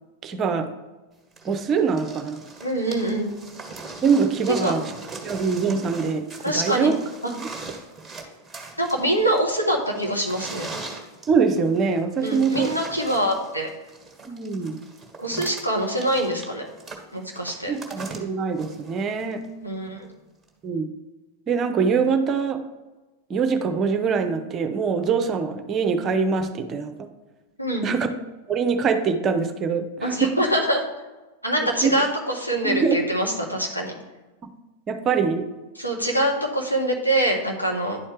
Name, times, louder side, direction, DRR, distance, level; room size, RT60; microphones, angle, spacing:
voice 1, 0.2-0.7 1.4-2.4 4.0-4.9 5.2-6.9 7.4-7.5 11.3-12.7 14.2-14.8 17.7-19.5 20.6-20.9 21.5-22.6 23.3-27.1 27.8-28.1 28.5-30.3 31.6-32.0 32.6-33.1 34.4-34.5 34.9-35.5, right 5 dB, 30° right, 8 dB, 0.7 m, -23 dB
sound 1, 1.4-19.5 20.5-20.6, right 3 dB, 5° right, 1.5 m, -40 dB
voice 2, 2.6-3.3 4.6-4.7 6.4-6.9 7.2-7.3 8.8-10.7 12.2-13.7 15.2-16.7 17.1-17.7 19.6-20.1 27.6-27.9 30.0-30.8 31.4-33.9 35.8-38.0, right 1 dB, 90° left, -1 dB, 1.2 m, -24 dB
10.5 x 4.3 x 3.3 m, 1.2 s
figure-of-eight pair, 90°, 0 cm